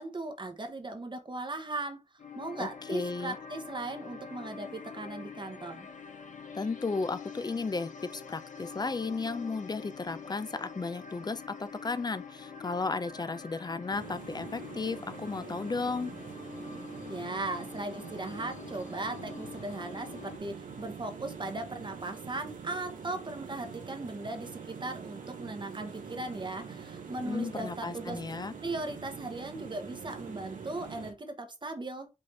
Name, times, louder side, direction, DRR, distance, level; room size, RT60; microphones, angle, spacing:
voice 1, 0.0-2.0 2.3-5.9 17.1-28.2 28.6-32.1, right 2 dB, 35° right, 0.9 m, -38 dB
sound 1, 2.2-20.4, left 6 dB, 70° left, 0.7 m, -46 dB
voice 2, 2.6-3.4 6.5-16.1 27.2-28.5, left 4 dB, 30° left, 0.5 m, -34 dB
sound 2, 13.9-31.1, right 6 dB, 85° right, 1.2 m, -44 dB
5.4 x 2.6 x 3.2 m
cardioid pair, 60°, 13 cm